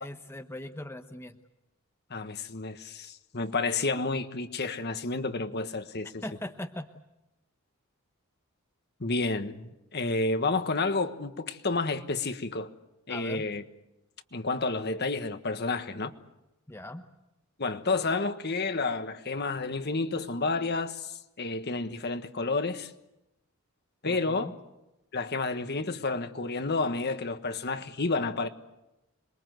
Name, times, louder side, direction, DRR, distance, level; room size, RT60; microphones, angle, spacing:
voice 1, 0.0-1.3 6.2-6.9 13.1-13.5 16.7-17.1 24.1-24.5, left 1 dB, 10° left, 0.9 m, -40 dB
voice 2, 2.1-6.2 9.0-12.7 13.1-13.6 14.3-16.1 17.6-22.9 24.0-24.5 25.1-28.5, left 3 dB, 50° left, 1.5 m, -30 dB
27.0 x 22.0 x 7.9 m
head